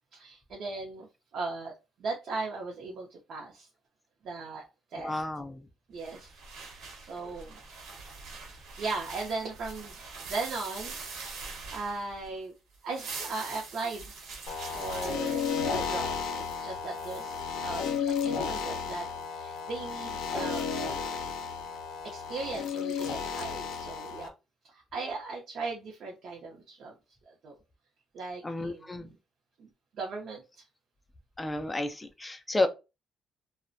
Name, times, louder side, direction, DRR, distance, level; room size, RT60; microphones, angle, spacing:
voice 1, 0.1-1.1 1.3-1.7 2.0-3.7 4.2-5.2 5.9-7.6 8.8-9.9 10.2-11.4 11.7-12.5 12.8-14.1 14.7-15.4 15.7-16.2 16.5-20.9 22.0-24.3 24.7-26.9 27.3-27.5 28.1-29.1 29.6-30.4, right 3 dB, 50° right, 0.6 m, -38 dB
voice 2, 5.0-5.6 28.4-29.1 31.4-32.7, left 2 dB, 10° left, 0.3 m, -31 dB
sound 1, 6.0-12.4 12.7-17.4, right 4 dB, 75° right, 0.9 m, -44 dB
sound 2, 14.5-24.3, left 6 dB, 80° left, 0.4 m, -33 dB
2.4 x 2.0 x 2.5 m
cardioid pair, 165°, 0 cm